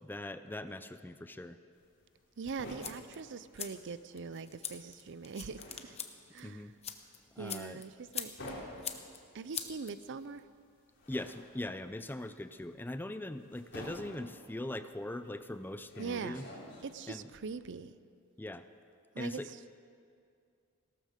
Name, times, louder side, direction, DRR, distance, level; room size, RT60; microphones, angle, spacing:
voice 1, 0.0-1.6 6.4-6.8 7.4-7.8 11.1-16.5 17.1-17.3 18.4-18.7 19.2-19.5, left 1 dB, 10° left, 11 dB, 0.4 m, -41 dB
sound 1, 1.7-4.3 4.5-17.2, left 1 dB, 55° left, 3.7 m, -50 dB
sound 2, 2.4-10.4, left 8 dB, 30° left, 0.9 m, -45 dB
voice 2, 2.4-6.0 6.3-6.6 7.4-8.3 9.3-10.4 16.0-16.4 16.8-18.0 19.1-19.4, right 5 dB, 55° right, 14 dB, 0.5 m, -42 dB
16.5 x 12.5 x 6.6 m, 2.4 s
head